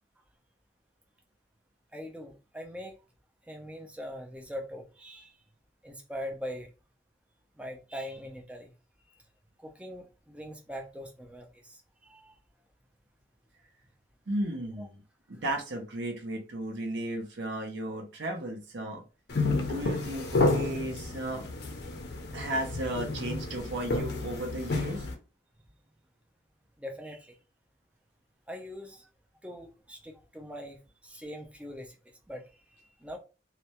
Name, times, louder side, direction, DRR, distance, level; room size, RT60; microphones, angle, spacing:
voice 1, 1.9-3.0 3.4-5.4 5.8-6.7 7.6-8.7 9.1-9.2 9.6-12.4 14.8-14.9 15.3-15.4 26.8-27.4 28.5-29.1 29.4-32.0 32.3-33.2, equal, 5° right, 0.3 m, -42 dB
voice 2, 14.3-14.9 15.3-19.0 19.6-21.5 22.3-25.1, right 1 dB, 70° right, 0.5 m, -34 dB
sound 1, 19.3-25.1, left 2 dB, 55° left, 0.5 m, -31 dB
2.2 x 2.1 x 2.7 m
head